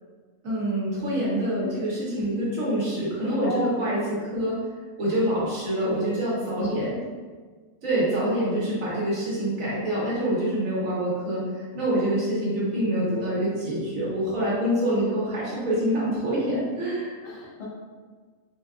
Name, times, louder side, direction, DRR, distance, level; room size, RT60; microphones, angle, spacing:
voice 1, 0.4-4.6 5.0-6.9 7.8-11.4 11.7-17.1, right 1 dB, 75° right, -7 dB, 1.5 m, -26 dB
voice 2, 3.4-3.8 6.6-6.7 17.2-17.6, left 4 dB, 55° left, -6 dB, 1.0 m, -33 dB
4.3 x 2.3 x 2.4 m, 1.4 s
omnidirectional pair, 1.4 m